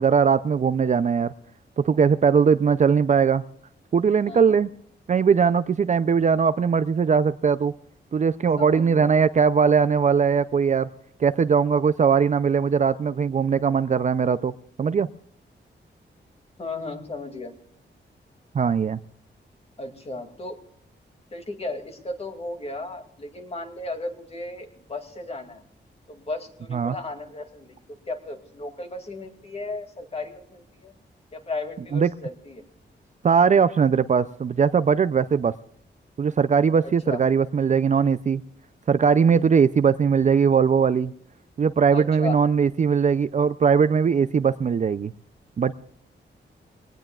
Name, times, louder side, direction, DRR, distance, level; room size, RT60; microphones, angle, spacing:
voice 1, 0.0-1.3 1.8-3.4 3.9-4.7 5.1-7.7 8.1-10.9 11.2-14.5 14.8-15.1 18.5-19.0 26.7-27.0 31.9-32.1 33.2-35.5 36.2-38.4 38.9-41.1 41.6-45.1 45.6-45.7, right 6 dB, 40° right, 13 dB, 0.4 m, -20 dB
voice 2, 4.3-4.6 8.6-9.1 16.6-17.5 19.8-20.6 21.3-25.6 26.1-30.9 31.3-32.6 36.8-37.2 39.3-39.5 41.9-42.4, left 2 dB, 35° left, 4 dB, 2.4 m, -35 dB
23.0 x 18.5 x 2.4 m, 0.68 s
wide cardioid pair, 135°, 19 cm